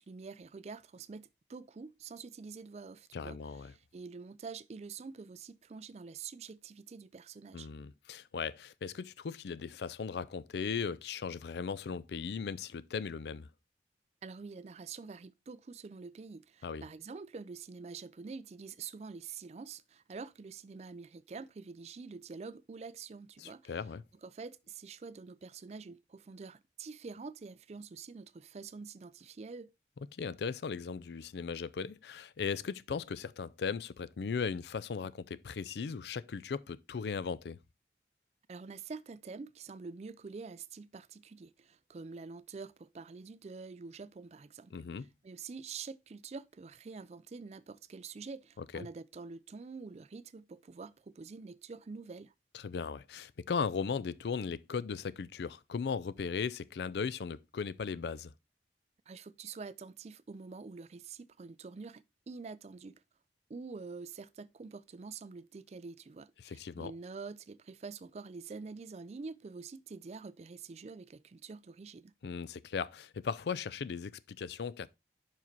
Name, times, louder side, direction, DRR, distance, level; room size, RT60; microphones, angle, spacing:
voice 1, 0.0-7.7 14.2-23.7 24.2-29.7 38.5-52.3 59.1-62.9 63.5-72.1, right 4 dB, 35° right, 0.3 m, -46 dB
voice 2, 3.1-3.7 7.5-13.5 16.6-16.8 23.4-24.0 30.1-37.6 44.7-45.1 48.6-48.9 52.5-58.3 66.4-66.9 72.2-74.9, left 5 dB, 70° left, 0.4 m, -37 dB
5.6 x 4.8 x 4.4 m
head